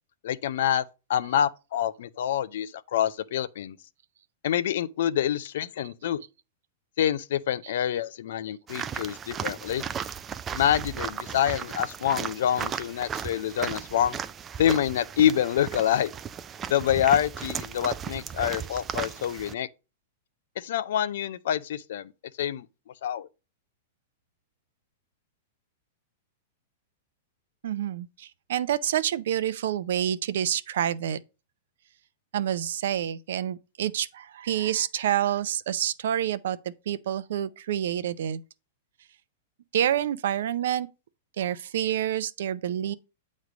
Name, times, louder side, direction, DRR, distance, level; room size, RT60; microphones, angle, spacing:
voice 1, 0.2-3.8 4.4-6.2 7.0-9.8 10.5-14.2 14.6-16.1 16.7-19.7 20.6-22.1 22.4-22.7 23.0-23.3, left 10 dB, 70° left, 0.5 m, -26 dB
steps on gravel, 8.7-19.5, right 7 dB, 20° right, 0.3 m, -36 dB
voice 2, 27.6-31.2 32.3-38.4 39.7-40.9 41.4-42.9, right 10 dB, 70° right, 0.5 m, -28 dB
8.1 x 3.2 x 5.0 m
hypercardioid pair, 135°, 0 cm